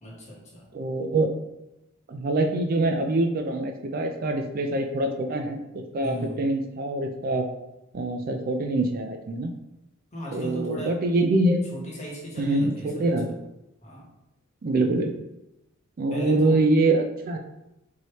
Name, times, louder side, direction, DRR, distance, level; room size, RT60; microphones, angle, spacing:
voice 1, 0.0-0.7 6.0-6.4 10.1-11.0 11.7-13.1 13.8-14.1 16.1-16.6, equal, 35° left, -4 dB, 1.2 m, -36 dB
voice 2, 0.7-1.3 2.1-5.6 5.9-7.5 7.9-9.5 10.3-11.6 12.4-13.3 14.6-15.2 16.0-17.4, right 2 dB, 45° right, 4 dB, 0.4 m, -24 dB
4.6 x 2.8 x 3.0 m, 0.90 s
head